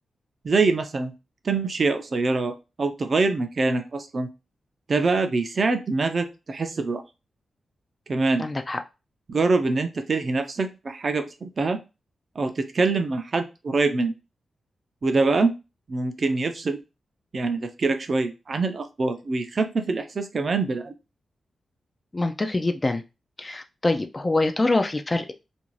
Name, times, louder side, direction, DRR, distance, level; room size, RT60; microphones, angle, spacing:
voice 1, 0.4-1.1 1.4-4.3 4.9-7.0 8.1-8.4 9.3-11.8 12.4-14.1 15.0-15.5 15.9-16.8 17.3-20.9, right 3 dB, 45° right, 0.4 m, -24 dB
voice 2, 8.4-8.8 22.1-23.0 23.4-25.3, left 2 dB, 25° left, 0.3 m, -25 dB
2.5 x 2.3 x 3.1 m
wide cardioid pair, 105°, 0 cm